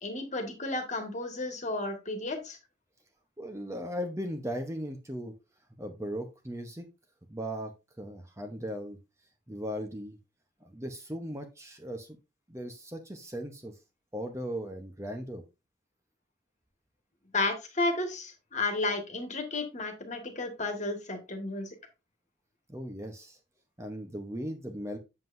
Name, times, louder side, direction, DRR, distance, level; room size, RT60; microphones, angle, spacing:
voice 1, 0.0-2.6 17.3-21.7, left 2 dB, 35° left, 5 dB, 1.6 m, -32 dB
voice 2, 3.4-5.3 5.8-6.9 7.3-7.7 8.0-9.0 9.5-10.2 10.6-12.2 12.5-13.7 14.1-15.4 22.7-23.4 23.8-25.0, equal, 15° right, 5 dB, 0.8 m, -37 dB
7.7 x 7.4 x 2.6 m, 0.25 s
head